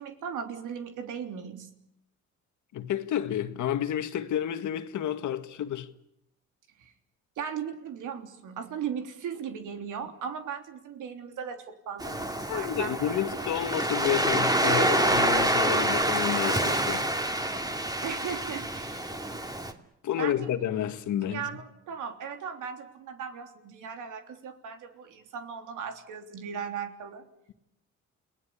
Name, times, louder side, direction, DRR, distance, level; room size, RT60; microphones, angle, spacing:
voice 1, 0.0-1.7 6.8-6.9 7.4-13.2 18.0-19.4 20.2-20.5 21.3-27.3, right 7 dB, 85° right, 3.5 m, -37 dB
voice 2, 2.7-5.9 12.5-17.1 20.0-21.5, left 10 dB, 75° left, 1.8 m, -30 dB
Waves surf, 12.0-19.7, right 1 dB, 15° right, 2.6 m, -27 dB
29.5 x 19.0 x 8.5 m
cardioid pair, 90°, 30 cm